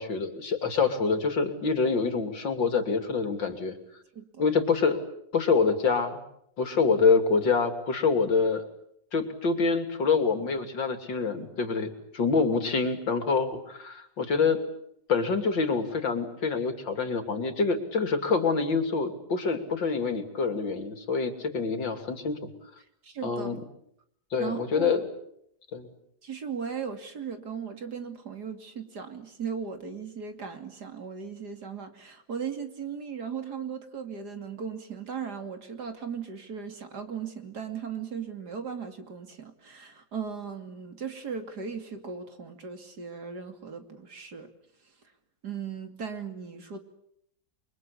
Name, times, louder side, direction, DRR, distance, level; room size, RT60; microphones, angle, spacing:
voice 1, 0.0-3.7 4.4-5.0 5.3-6.2 6.6-8.6 9.1-14.6 15.1-22.4 23.2-23.6 24.3-25.1 25.7-25.9, left 4 dB, 80° left, 7 dB, 3.6 m, -26 dB
voice 2, 4.1-4.5 23.0-23.6 24.4-25.0 26.2-44.5 45.4-46.8, right 6 dB, 60° right, 7 dB, 3.3 m, -37 dB
29.5 x 23.5 x 8.5 m, 0.73 s
omnidirectional pair, 2.0 m